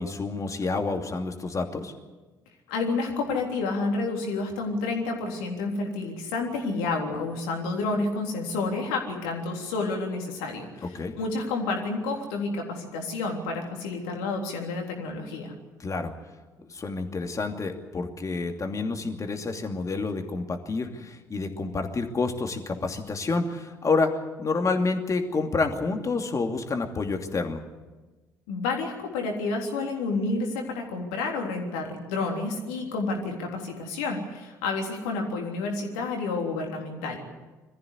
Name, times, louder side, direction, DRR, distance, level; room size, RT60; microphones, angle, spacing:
voice 1, 0.0-1.9 10.9-11.1 15.8-16.1 16.7-27.6, left 3 dB, 35° left, 5 dB, 2.7 m, -28 dB
voice 2, 2.7-10.9 11.2-15.5 28.5-37.2, left 3 dB, 75° left, 2 dB, 3.5 m, -30 dB
23.0 x 14.5 x 9.7 m, 1.2 s
hypercardioid pair, 50°, 10 cm